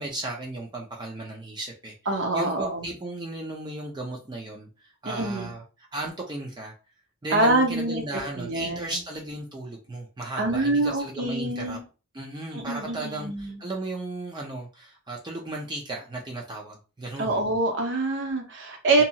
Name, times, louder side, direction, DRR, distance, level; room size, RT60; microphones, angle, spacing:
voice 1, 0.0-1.9 2.3-5.6 5.9-6.7 7.2-11.8 12.1-17.4 19.0-19.1, right 2 dB, 20° right, -1 dB, 0.4 m, -35 dB
voice 2, 2.1-2.9 5.1-5.5 7.3-8.8 10.4-11.8 12.5-13.6 17.2-19.0, right 2 dB, 55° right, 3 dB, 0.7 m, -25 dB
2.7 x 2.3 x 2.6 m, 0.33 s
head